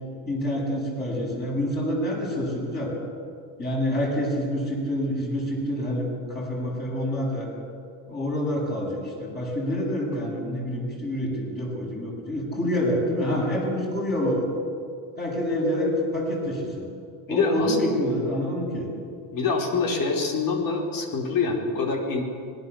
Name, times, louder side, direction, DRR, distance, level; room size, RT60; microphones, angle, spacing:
voice 1, 0.3-2.9 3.6-7.5 8.1-14.4 15.2-16.9 17.3-18.9, equal, 20° left, -3 dB, 7.8 m, -27 dB
voice 2, 17.3-17.8 19.3-22.2, left 4 dB, 45° left, 0 dB, 4.9 m, -25 dB
25.5 x 20.0 x 7.3 m, 2.3 s
cardioid pair, 125°, 45 cm